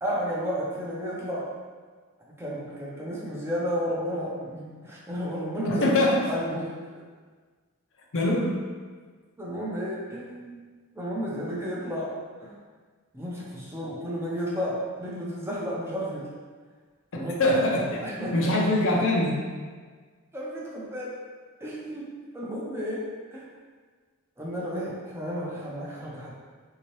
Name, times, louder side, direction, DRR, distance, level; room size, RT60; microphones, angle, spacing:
voice 1, 0.0-1.6 2.4-6.0 6.3-7.0 9.4-10.6 11.0-12.6 13.1-16.3 17.1-17.5 17.8-18.7 20.3-21.2 21.6-23.5 24.4-26.3, equal, 10° right, -6 dB, 0.6 m, -32 dB
voice 2, 5.7-6.3 8.1-8.6 17.1-18.0 18.3-19.4, left 1 dB, 60° left, -2 dB, 0.6 m, -23 dB
3.5 x 2.8 x 3.1 m, 1.5 s
head